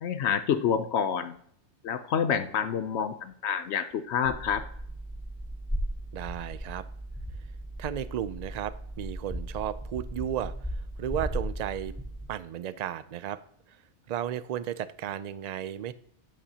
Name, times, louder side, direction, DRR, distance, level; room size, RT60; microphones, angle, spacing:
voice 1, 0.0-1.4 1.8-4.6, left 7 dB, 70° left, 10 dB, 0.9 m, -28 dB
sound 1, 4.2-12.3, right 1 dB, ahead, 3.3 m, -36 dB
voice 2, 6.1-6.8 7.8-11.9 12.3-13.4 14.1-15.9, right 10 dB, 65° right, 15 dB, 0.4 m, -34 dB
12.0 x 8.6 x 2.8 m, 0.65 s
omnidirectional pair, 1.2 m